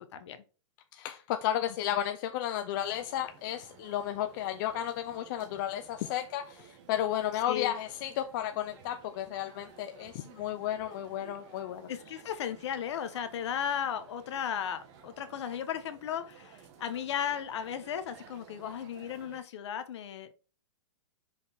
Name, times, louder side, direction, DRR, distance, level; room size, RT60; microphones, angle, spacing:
voice 1, 0.9-11.9, left 11 dB, 40° left, 0.7 m, -33 dB
sound 1, 2.7-19.4, right 7 dB, 40° right, 1.7 m, -55 dB
voice 2, 11.9-20.4, left 9 dB, 60° left, 1.3 m, -35 dB
6.2 x 4.9 x 3.6 m
hypercardioid pair, 145°, 16 cm